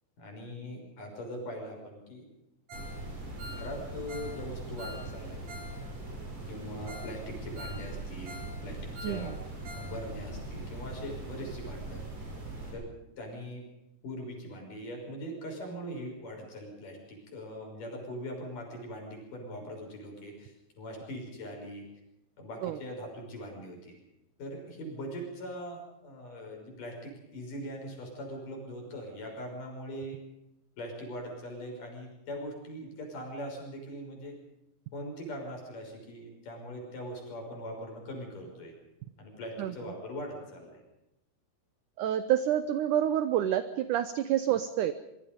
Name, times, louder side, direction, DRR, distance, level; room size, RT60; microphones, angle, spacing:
voice 1, 0.2-2.3 3.5-5.4 6.5-9.3 9.8-12.0 12.7-12.9 13.2-13.6 14.0-21.9 22.4-23.9 24.4-30.2 30.8-34.3 34.9-38.7 39.2-40.8, equal, 50° left, 1 dB, 7.3 m, -41 dB
sound 1, 2.7-12.7, right 2 dB, 45° right, 7.6 m, -41 dB
Ringtone, 2.7-3.0 3.2-5.8 6.0-6.1 6.6-6.7 6.9-7.1 7.4-8.6 8.8-9.9 10.2-10.3 10.7-10.8, left 1 dB, 60° right, 5.8 m, -46 dB
voice 2, 9.0-9.3 22.6-22.8 39.6-39.7 42.0-44.9, right 11 dB, 85° right, 12 dB, 1.8 m, -28 dB
24.0 x 22.5 x 5.3 m, 0.91 s
omnidirectional pair, 4.7 m